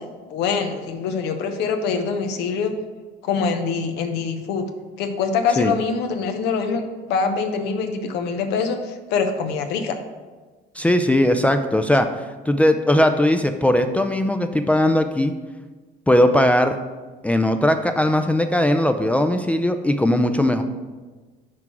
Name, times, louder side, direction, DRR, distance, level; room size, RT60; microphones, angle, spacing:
voice 1, 0.0-2.7 3.2-4.7 5.0-6.8 7.1-10.0, left 5 dB, 90° left, 6 dB, 0.8 m, -24 dB
voice 2, 10.8-12.1 12.5-15.3 16.1-16.7 17.2-20.6, left 1 dB, 10° left, 7 dB, 0.4 m, -19 dB
6.0 x 4.6 x 6.0 m, 1.3 s
cardioid pair, 110°, 17 cm